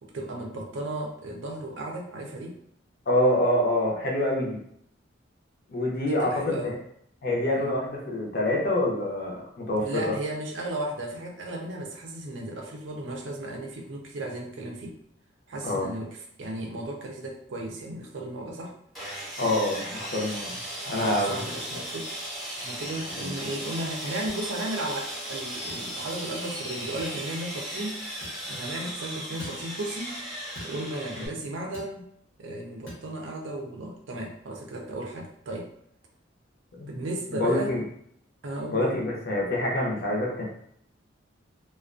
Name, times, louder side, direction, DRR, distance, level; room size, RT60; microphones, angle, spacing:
voice 1, 0.0-2.6 6.0-6.7 7.6-7.7 9.8-15.0 15.5-18.7 21.0-22.1 22.6-28.0 28.5-30.2 30.6-32.1 32.4-35.7 36.9-37.8 38.4-38.8, right 1 dB, 70° right, 1 dB, 0.5 m, -35 dB
voice 2, 3.1-4.6 5.7-6.8 7.2-10.1 15.6-15.9 19.4-20.5 20.9-21.4 23.1-23.3 36.8-36.9 37.3-37.8 38.7-40.4, left 1 dB, 50° left, -2 dB, 0.6 m, -26 dB
Sawing, 18.9-31.3, equal, ahead, 0.6 m, -36 dB
sound 1, 24.3-24.4 25.7-25.9 27.0-27.2 28.2-28.4 29.4-29.6 30.5-30.8 31.7-32.0 32.9-33.1, equal, 80° left, 0.9 m, -43 dB
2.4 x 2.1 x 2.4 m, 0.68 s
head